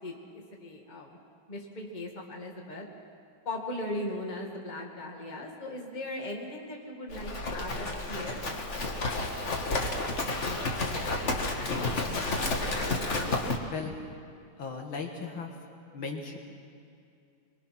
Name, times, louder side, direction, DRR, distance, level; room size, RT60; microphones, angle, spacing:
voice 1, 0.0-1.2 1.5-2.9 3.4-8.4, left 1 dB, 20° left, 0 dB, 2.1 m, -38 dB
Livestock farm animals working animals, 7.1-13.6, left 2 dB, 35° left, 1.6 m, -31 dB
voice 2, 13.7-14.1 14.5-16.4, left 4 dB, 70° left, 2 dB, 2.4 m, -38 dB
23.0 x 22.0 x 6.0 m, 2.5 s
omnidirectional pair, 2.4 m